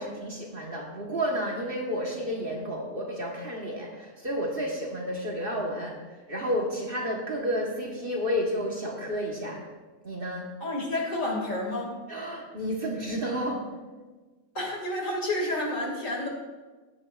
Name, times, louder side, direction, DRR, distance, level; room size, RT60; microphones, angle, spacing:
voice 1, 0.0-6.0 6.3-9.7 10.0-10.5 12.1-13.7, equal, 40° right, -1 dB, 1.5 m, -31 dB
voice 2, 10.6-11.9 14.5-16.3, left 1 dB, 60° left, -1 dB, 2.8 m, -30 dB
16.5 x 9.8 x 2.5 m, 1.3 s
omnidirectional pair, 1.6 m